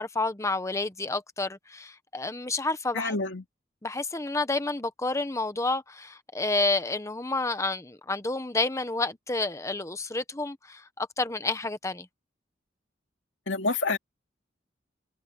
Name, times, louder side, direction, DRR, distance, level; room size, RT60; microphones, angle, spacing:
voice 1, 0.0-3.2 3.8-12.1, left 3 dB, 15° left, 0.9 m, -30 dB
voice 2, 2.9-3.4 13.5-14.0, left 3 dB, 85° left, 2.3 m, -27 dB
head